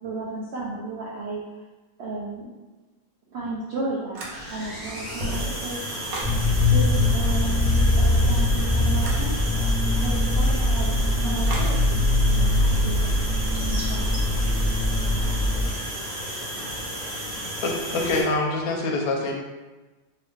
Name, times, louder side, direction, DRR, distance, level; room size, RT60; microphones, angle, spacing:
voice 1, 0.0-1.6 2.0-2.5 3.3-4.2 4.5-5.8 6.6-12.5 12.8-13.2 13.6-14.1, right 2 dB, 80° right, -6 dB, 0.5 m, -34 dB
sound 1, 4.1-4.7 5.1-6.4 9.0-9.3 11.4-11.8, right 1 dB, 65° right, 1.1 m, -33 dB
sound 2, 4.3-18.2, equal, 45° right, 1.2 m, -33 dB
sound 3, 6.2-15.7, left 1 dB, 30° right, 0.9 m, -22 dB
voice 2, 12.6-13.0 13.4-15.8, equal, 20° left, -13 dB, 1.0 m, -42 dB
voice 3, 17.6-19.3, left 2 dB, 70° left, 1 dB, 1.0 m, -25 dB
2.8 x 2.7 x 3.4 m, 1.2 s
omnidirectional pair, 1.8 m